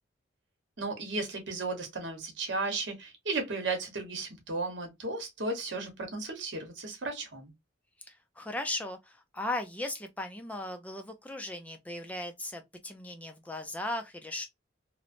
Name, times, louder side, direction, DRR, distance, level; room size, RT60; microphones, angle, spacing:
voice 1, 0.8-7.5, right 3 dB, 75° right, 0.9 m, -35 dB
voice 2, 8.0-14.5, left 1 dB, 10° left, 0.3 m, -37 dB
3.0 x 2.0 x 2.4 m
head